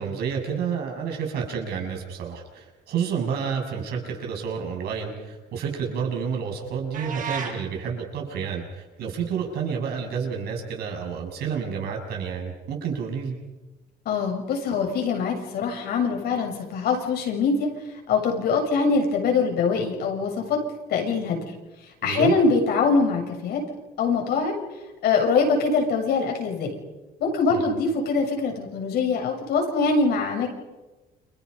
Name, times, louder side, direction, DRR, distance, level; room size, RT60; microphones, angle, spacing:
voice 1, 0.0-13.4 22.0-22.3 27.5-27.6, right 6 dB, 70° right, 2 dB, 7.7 m, -30 dB
sound 1, 6.9-7.6, right 7 dB, 50° right, 6.1 m, -31 dB
voice 2, 14.1-17.7 18.1-20.6 20.9-21.4 22.0-23.6 24.0-24.6 25.0-26.7 27.2-30.5, left 4 dB, 70° left, 2 dB, 7.3 m, -23 dB
30.0 x 25.0 x 5.7 m, 1.1 s
cardioid pair, 110°, 17 cm